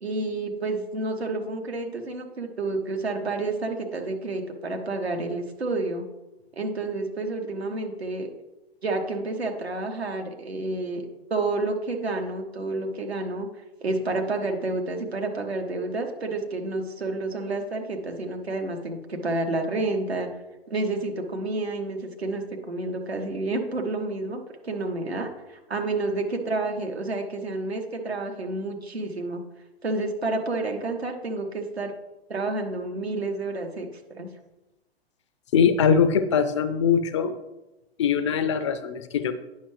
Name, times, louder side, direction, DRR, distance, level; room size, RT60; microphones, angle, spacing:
voice 1, 0.0-6.0 6.6-8.3 8.8-13.5 13.8-20.3 20.7-29.4 29.8-31.9 32.3-34.3, right 2 dB, 80° right, 3 dB, 1.2 m, -29 dB
voice 2, 35.5-37.4 38.0-39.3, left 7 dB, 30° left, 11 dB, 0.4 m, -22 dB
9.4 x 5.7 x 3.2 m, 1.0 s
figure-of-eight pair, 110°, 31 cm